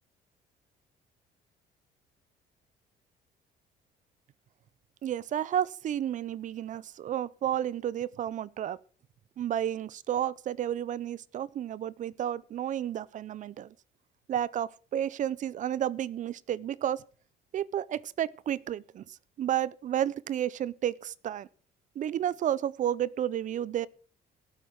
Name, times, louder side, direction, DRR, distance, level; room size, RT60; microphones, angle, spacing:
voice 1, 5.0-8.8 9.4-13.7 14.3-17.0 17.5-21.5 22.0-23.9, right 10 dB, 50° right, 0.5 m, -31 dB
16.5 x 8.1 x 4.6 m
cardioid pair, 110°, 17 cm